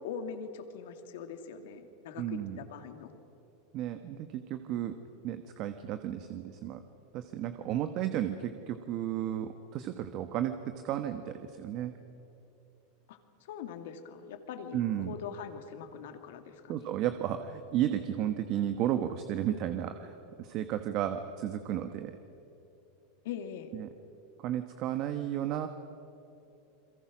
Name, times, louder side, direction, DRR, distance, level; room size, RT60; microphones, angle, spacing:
voice 1, 0.0-3.1 13.1-17.0 23.2-23.7, left 7 dB, 75° left, 7 dB, 2.4 m, -42 dB
voice 2, 2.2-2.6 3.7-4.9 5.2-6.8 7.1-11.9 14.7-15.1 16.7-22.1 23.7-23.9 24.4-25.7, right 11 dB, 50° right, 9 dB, 1.3 m, -33 dB
29.5 x 22.5 x 6.2 m, 2.9 s
supercardioid pair, 130°, 0 cm